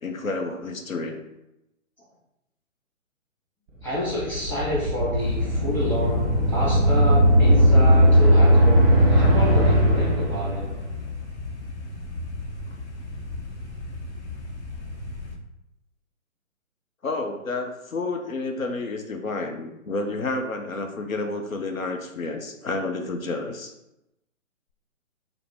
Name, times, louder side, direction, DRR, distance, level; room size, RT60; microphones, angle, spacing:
voice 1, 0.0-1.2 17.0-23.7, left 3 dB, 85° left, 5 dB, 0.7 m, -30 dB
voice 2, 3.8-10.7, left 1 dB, 5° left, -9 dB, 1.4 m, -29 dB
sound 1, 4.0-10.9, equal, 15° right, 0.8 m, -18 dB
sound 2, 5.2-15.3, left 2 dB, 55° left, 1.0 m, -35 dB
4.7 x 2.0 x 4.7 m, 0.90 s
figure-of-eight pair, 130°, 40 cm